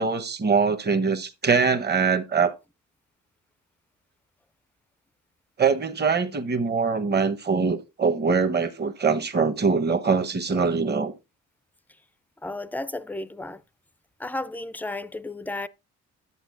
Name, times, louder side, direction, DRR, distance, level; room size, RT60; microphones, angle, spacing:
voice 1, 0.0-2.5 5.6-11.1, right 5 dB, 35° right, 1.0 m, -23 dB
voice 2, 12.4-13.6 14.2-15.7, left 2 dB, 5° left, 0.4 m, -33 dB
11.0 x 7.9 x 2.5 m
cardioid pair, 90°, 30 cm